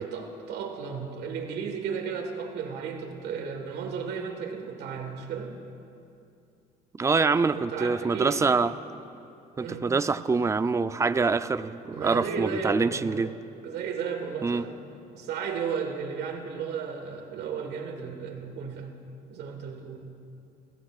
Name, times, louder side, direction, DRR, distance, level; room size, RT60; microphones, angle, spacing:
voice 1, 0.0-5.6 7.2-8.4 9.6-9.9 11.9-13.3 13.6-14.8 15.1-19.0 19.3-20.0, right 6 dB, 80° right, 4 dB, 1.6 m, -34 dB
voice 2, 7.0-8.7 9.6-13.3 14.4-14.6, right 4 dB, 15° right, 13 dB, 0.4 m, -25 dB
29.0 x 15.5 x 2.4 m, 2.6 s
cardioid pair, 110°, 17 cm